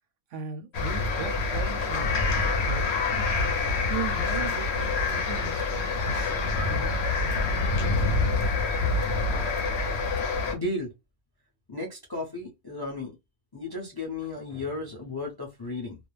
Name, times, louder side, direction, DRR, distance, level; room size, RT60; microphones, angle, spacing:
voice 1, 0.3-2.9 3.9-7.6, right 6 dB, 70° right, 0.8 m, -38 dB
sound 1, 0.7-10.5, left 3 dB, 60° left, 0.8 m, -26 dB
voice 2, 10.5-10.9 11.7-13.1 13.5-16.0, left 2 dB, 30° left, 0.4 m, -34 dB
2.4 x 2.0 x 3.1 m
omnidirectional pair, 1.5 m